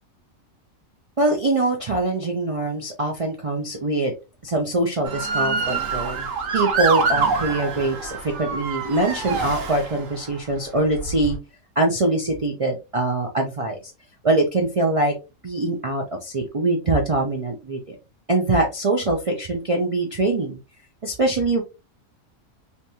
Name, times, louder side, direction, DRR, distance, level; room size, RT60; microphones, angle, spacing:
voice 1, 1.2-4.1 4.4-6.3 6.5-11.4 11.8-13.9 14.2-15.1 15.4-18.0 18.3-20.6 21.0-21.6, right 2 dB, 55° right, 0 dB, 0.4 m, -23 dB
Motor vehicle (road) / Siren, 5.0-10.3 10.9-11.4, right 4 dB, 75° right, 1.2 m, -25 dB
3.4 x 2.9 x 2.8 m, 0.28 s
omnidirectional pair, 1.4 m